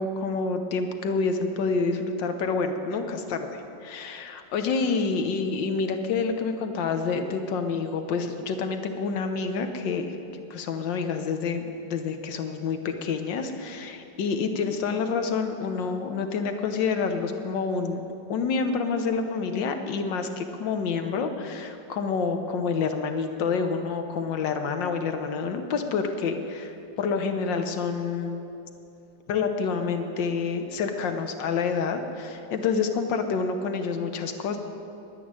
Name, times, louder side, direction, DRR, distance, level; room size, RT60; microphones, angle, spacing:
voice 1, 0.0-10.1 10.5-18.0 18.3-28.4 29.3-34.6, left 5 dB, 80° left, 7 dB, 1.7 m, -28 dB
11.0 x 10.0 x 9.7 m, 2.7 s
omnidirectional pair, 2.0 m